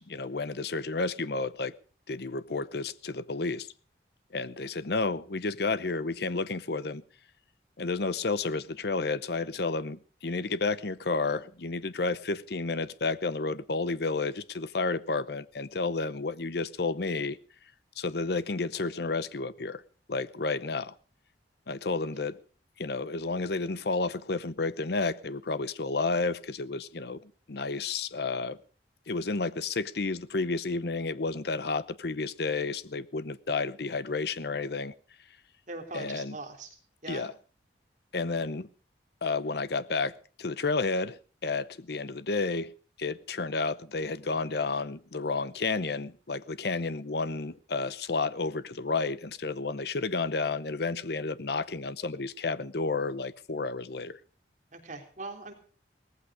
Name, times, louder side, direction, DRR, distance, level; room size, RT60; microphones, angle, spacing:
voice 1, 0.1-1.7 2.1-3.7 4.3-7.0 7.8-17.4 18.0-19.8 20.1-20.9 21.7-22.4 22.8-28.6 29.1-34.9 35.9-36.4 37.1-37.3 38.1-38.7 39.2-42.7 43.0-54.2, left 3 dB, 65° left, 0.8 m, -31 dB
voice 2, 35.7-36.8 37.0-37.3 54.7-55.5, right 3 dB, 45° right, 3.5 m, -41 dB
18.0 x 15.0 x 5.0 m
head